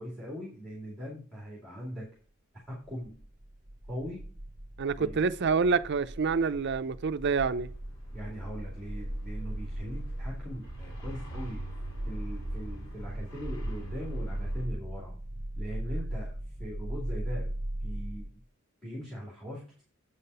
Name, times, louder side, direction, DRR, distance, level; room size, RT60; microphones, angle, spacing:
voice 1, 0.0-2.1 2.7-3.2 3.9-4.2 5.0-5.2 8.1-11.6 12.0-15.2 15.6-16.3 16.6-17.6 17.8-18.3 18.8-19.8, equal, ahead, 2.5 m, -40 dB
sound 1, 2.9-18.3, right 1 dB, 25° right, 1.0 m, -38 dB
voice 2, 4.8-7.7, right 5 dB, 55° right, 0.5 m, -27 dB
sound 2, 7.3-14.7, right 1 dB, 85° left, 3.6 m, -44 dB
8.2 x 5.6 x 5.5 m
head